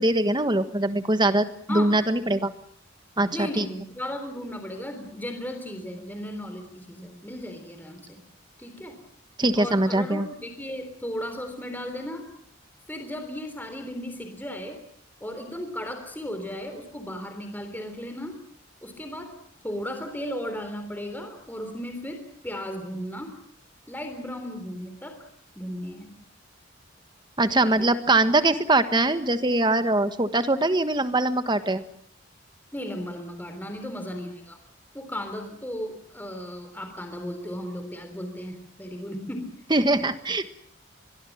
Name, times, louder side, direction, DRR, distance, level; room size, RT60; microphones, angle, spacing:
voice 1, 0.0-2.5 3.2-3.7 9.4-10.3 27.4-31.8 39.7-40.5, right 2 dB, 20° right, 10 dB, 1.4 m, -22 dB
voice 2, 3.3-8.2 8.6-9.0 9.5-12.3 12.9-14.8 15.2-18.4 18.8-19.3 19.6-23.4 23.9-25.3 25.6-26.1 27.8-27.9 32.7-34.6 34.9-39.5, equal, 10° left, 6 dB, 3.6 m, -35 dB
24.0 x 22.0 x 7.3 m, 0.66 s
head